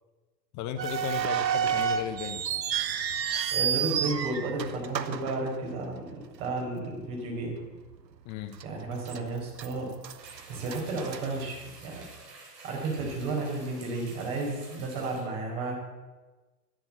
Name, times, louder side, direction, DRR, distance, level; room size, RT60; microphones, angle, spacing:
voice 1, 0.5-2.4 8.2-8.6, left 9 dB, 35° left, 9 dB, 0.9 m, -35 dB
sound 1, 0.8-6.1 6.4-6.5 7.2-7.4 7.9-8.0 8.6-9.2 9.5-12.0, right 8 dB, 85° right, 0.9 m, -30 dB
voice 2, 3.5-6.1 6.4-7.6 8.6-10.0 10.5-12.1 12.6-15.8, right 2 dB, 50° right, -1 dB, 5.0 m, -32 dB
sound 2, 10.2-15.2, right 3 dB, 70° right, 4.6 m, -50 dB
10.5 x 10.0 x 7.5 m, 1.2 s
figure-of-eight pair, 90°, 50 cm